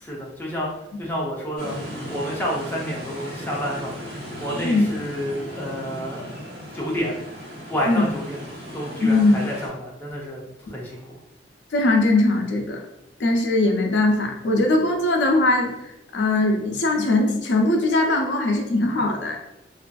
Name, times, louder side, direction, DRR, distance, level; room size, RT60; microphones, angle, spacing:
voice 1, 0.0-0.7 1.0-1.8 2.1-4.0 4.4-7.2 7.7-8.5 8.7-10.4 10.7-11.0, equal, 10° left, -4 dB, 0.5 m, -29 dB
sound 1, 1.6-9.7, equal, 60° right, 1.0 m, -36 dB
voice 2, 9.0-9.4 11.7-12.8 13.2-19.4, left 2 dB, 80° left, 2 dB, 0.5 m, -20 dB
2.4 x 2.4 x 2.2 m, 0.85 s
head